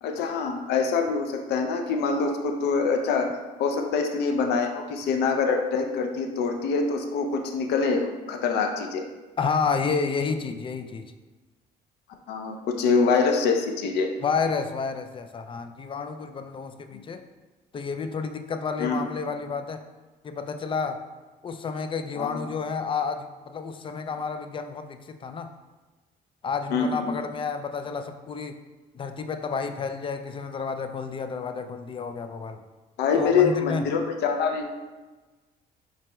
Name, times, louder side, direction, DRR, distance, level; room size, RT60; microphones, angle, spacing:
voice 1, 0.0-3.3 3.6-9.1 12.3-14.1 16.9-17.0 18.8-19.1 22.2-22.4 26.7-27.2 33.0-34.8, left 5 dB, 75° left, 4 dB, 0.6 m, -25 dB
voice 2, 9.4-11.1 14.2-17.2 17.7-19.8 20.2-21.0 21.4-25.5 26.4-28.6 28.9-32.6 33.2-33.9, left 5 dB, 30° left, 7 dB, 0.4 m, -30 dB
5.8 x 4.0 x 2.3 m, 1.2 s
cardioid pair, 110°, 17 cm